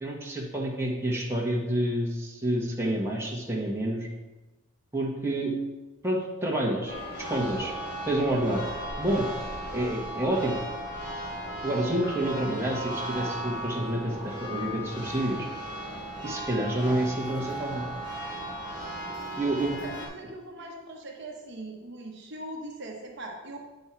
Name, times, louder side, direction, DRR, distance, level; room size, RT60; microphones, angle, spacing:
voice 1, 0.0-4.1 4.9-5.5 6.0-6.9 7.3-7.7 8.0-8.6 9.0-9.3 9.7-10.6 11.6-15.5 16.2-17.8 19.4-19.8, right 1 dB, 10° right, -4 dB, 1.1 m, -28 dB
Church bell, 6.9-20.1, right 1 dB, 45° left, 3.0 m, -36 dB
voice 2, 19.8-23.6, right 1 dB, 50° right, 0 dB, 1.0 m, -41 dB
8.7 x 5.4 x 4.5 m, 1.2 s
head